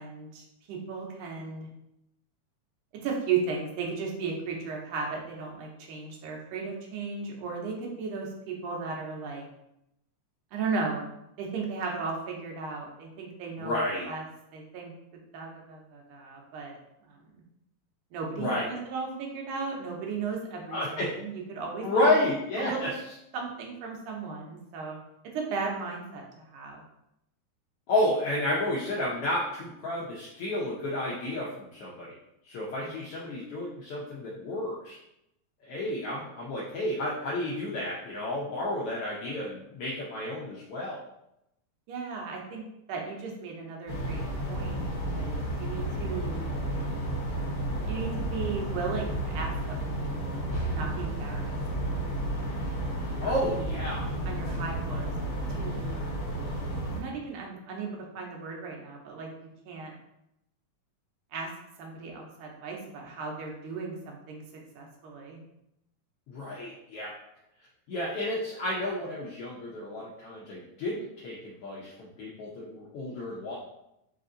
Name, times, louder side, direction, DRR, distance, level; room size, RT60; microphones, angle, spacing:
voice 1, 0.0-1.7 3.0-9.4 10.5-11.0 11.4-14.2 14.5-14.9 15.3-16.8 17.0-17.2 18.1-18.6 18.9-22.2 22.6-23.0 23.3-25.0 25.3-26.8 32.8-32.9 41.9-42.6 42.9-44.8 45.1-46.4 47.9-51.6 52.0-52.3 53.2-53.7 54.2-56.5 56.9-59.3 59.7-59.9 61.3-61.5 61.8-64.4 64.8-65.4, right 4 dB, 90° right, 0 dB, 2.3 m, -36 dB
voice 2, 13.6-14.1 18.3-18.7 20.7-21.1 21.8-22.9 27.9-32.2 32.4-35.0 35.6-41.0 53.2-54.1 54.9-55.1 66.3-67.2 67.9-73.6, left 1 dB, 75° left, -6 dB, 1.3 m, -31 dB
sound 1, 43.9-57.0, right 1 dB, 55° left, 1.6 m, -32 dB
5.1 x 2.5 x 3.8 m, 0.83 s
omnidirectional pair, 3.5 m